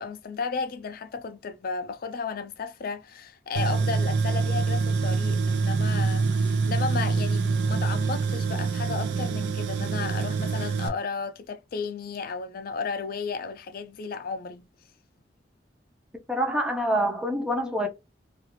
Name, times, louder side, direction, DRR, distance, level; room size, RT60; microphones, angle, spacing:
voice 1, 0.0-14.7, left 5 dB, 55° left, 0.4 m, -34 dB
Tools, 3.6-10.9, right 4 dB, 70° right, 0.5 m, -25 dB
voice 2, 16.3-17.9, equal, 5° right, 0.6 m, -26 dB
2.4 x 2.4 x 2.9 m
head